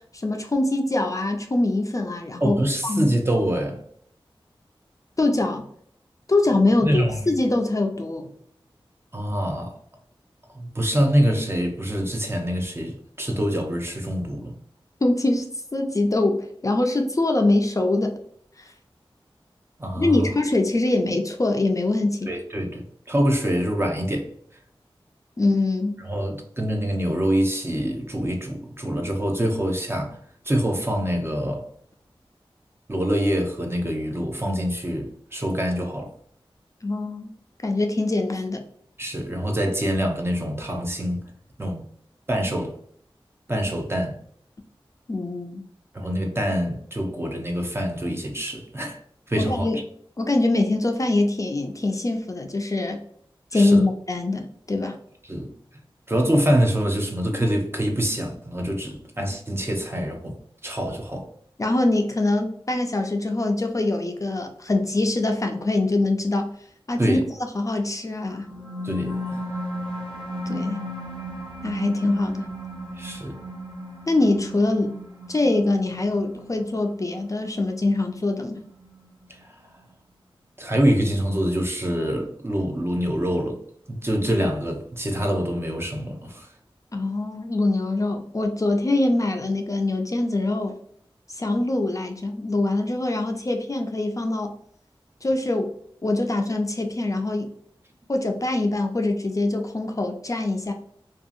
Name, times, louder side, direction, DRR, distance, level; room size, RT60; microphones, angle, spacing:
voice 1, 0.1-2.6 2.8-3.1 5.2-5.7 6.3-8.3 15.0-15.5 15.7-18.1 18.6-18.7 20.0-22.3 25.4-26.0 36.8-37.3 37.6-38.6 45.1-45.6 49.4-49.8 50.2-53.0 53.5-55.0 61.6-66.5 66.9-68.4 70.5-70.8 71.6-72.5 74.1-75.0 75.3-78.6 86.9-90.8 91.3-94.5 95.2-95.7 96.0-97.5 98.1-100.7, left 2 dB, 35° left, 0.4 m, -23 dB
voice 2, 2.4-3.8 6.8-7.4 9.1-9.8 10.5-14.5 19.8-20.3 22.3-24.3 26.0-30.2 30.4-31.6 32.9-36.1 39.0-41.2 41.6-41.8 42.3-42.7 43.5-44.2 45.9-49.0 49.3-49.8 53.5-53.8 55.2-55.5 56.1-60.4 60.6-61.3 67.0-67.2 68.8-69.4 73.0-73.3 79.4-79.5 80.6-83.6 83.9-86.5, equal, 25° right, 0.6 m, -25 dB
sound 1, 68.3-79.2, equal, 55° right, 1.4 m, -35 dB
2.7 x 2.3 x 2.5 m
cardioid pair, 40°, 10 cm